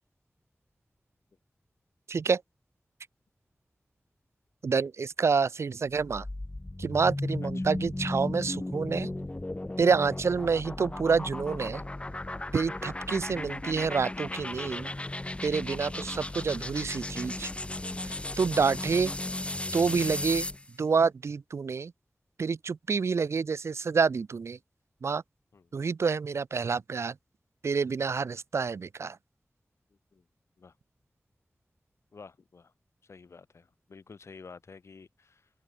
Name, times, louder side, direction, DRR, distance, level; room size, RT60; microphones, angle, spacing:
voice 1, 2.1-2.4 4.6-6.2 6.8-9.1 9.8-11.8 12.5-14.9 15.4-17.5 18.4-19.1 19.7-20.5 20.8-21.9 22.4-24.6 25.0-25.2 25.7-27.1 27.6-29.2, right 5 dB, 80° right, 0.5 m, -28 dB
sound 1, 6.0-20.7, left 2 dB, 25° left, 1.6 m, -35 dB
voice 2, 32.1-32.7 33.0-35.5, left 4 dB, 85° left, 1.4 m, -51 dB
wide cardioid pair, 70°, 5 cm